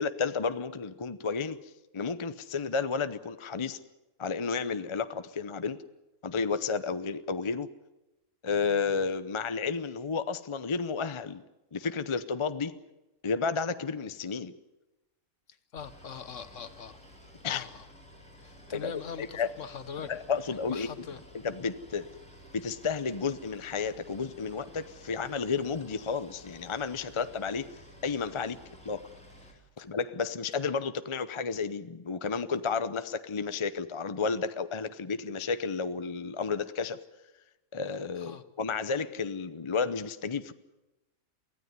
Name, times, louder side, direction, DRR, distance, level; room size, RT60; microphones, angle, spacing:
voice 1, 0.0-1.6 1.9-3.8 4.2-5.8 6.2-7.7 8.4-11.4 11.7-12.8 13.2-14.5 17.4-17.6 18.7-18.9 19.2-19.5 20.0-20.9 21.4-22.1 22.5-27.7 28.0-28.6 28.8-29.1 29.8-37.0 37.7-40.5, left 5 dB, 30° left, 0.6 m, -32 dB
voice 2, 15.7-17.0 17.4-17.9 18.4-20.1 20.7-21.2 29.8-29.9 38.1-38.4, left 7 dB, 60° left, 1.4 m, -42 dB
Boat Water vehicle, 15.8-29.5, left 1 dB, 5° left, 4.4 m, -53 dB
24.0 x 16.0 x 9.6 m
omnidirectional pair, 1.5 m